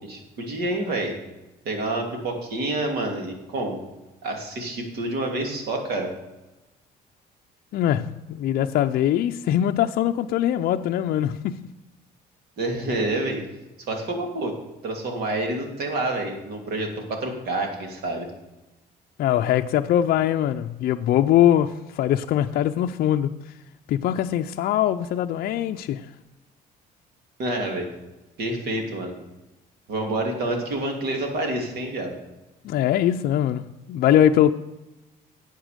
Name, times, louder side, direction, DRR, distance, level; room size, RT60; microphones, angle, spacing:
voice 1, 0.0-1.1 1.6-3.8 4.2-6.1 12.6-13.4 13.9-14.5 14.8-18.3 27.4-27.9 28.4-29.1 29.9-32.1, right 2 dB, 70° right, 2.8 m, -28 dB
voice 2, 7.7-11.7 19.2-23.3 23.9-26.0 32.6-34.5, left 11 dB, 60° left, 0.5 m, -22 dB
12.5 x 8.2 x 5.1 m
cardioid pair, 110°, 17 cm